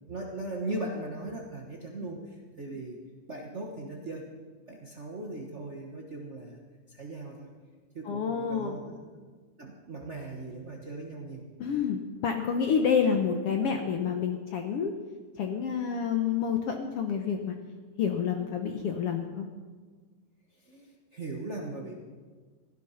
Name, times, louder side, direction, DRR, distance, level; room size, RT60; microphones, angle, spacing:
voice 1, 0.1-3.0 3.3-4.3 4.7-6.6 6.9-7.5 7.9-8.9 9.6-11.4 20.5-21.9, right 2 dB, 70° right, 0 dB, 0.6 m, -39 dB
voice 2, 8.0-8.8 11.6-14.9 15.4-17.5 18.0-19.5, left 7 dB, 65° left, 4 dB, 1.6 m, -28 dB
16.5 x 12.0 x 5.7 m, 1.4 s
omnidirectional pair, 3.5 m